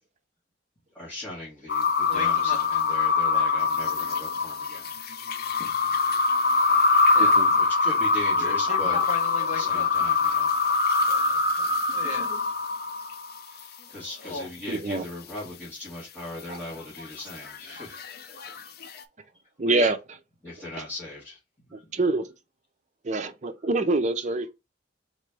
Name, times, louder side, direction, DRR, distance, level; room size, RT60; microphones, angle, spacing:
voice 1, 0.9-4.9 7.5-9.0 9.5-10.8 13.5-18.4 20.4-21.4 21.7-21.8, left 2 dB, 10° left, 1.9 m, -39 dB
sound 1, 1.7-13.4 16.8-19.0, left 4 dB, 55° left, 0.5 m, -24 dB
voice 2, 2.1-2.6 5.6-5.7 7.1-7.3 8.4-9.9 11.1-12.3 13.8-13.9 14.2-14.5 19.7-19.9, left 2 dB, 40° left, 1.1 m, -37 dB
voice 3, 7.2-7.5 8.7-9.0 9.4-9.7 12.0-12.5 14.7-15.0 16.5-16.6 19.6-20.2 21.7-22.3 23.0-24.5, right 2 dB, 40° right, 0.5 m, -27 dB
4.1 x 3.2 x 3.4 m
head